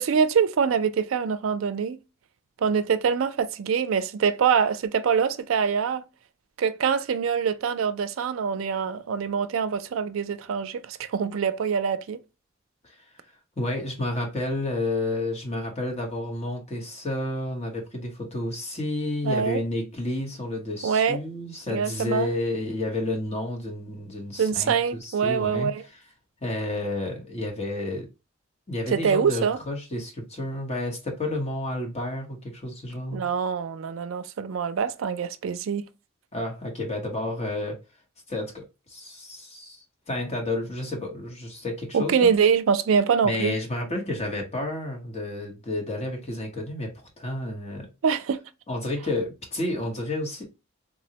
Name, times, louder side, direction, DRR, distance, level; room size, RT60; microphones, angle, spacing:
voice 1, 0.0-2.0 2.6-6.0 6.6-12.2 19.2-19.6 20.8-21.2 21.7-22.3 24.4-25.8 28.9-29.6 33.1-35.8 41.9-43.5 48.0-48.4, right 6 dB, 80° right, 0.4 m, -24 dB
voice 2, 13.6-25.7 26.4-28.1 28.7-33.2 36.3-37.8 38.3-42.1 43.2-47.9 48.7-50.4, left 1 dB, 35° left, 0.9 m, -31 dB
3.7 x 2.0 x 2.7 m
head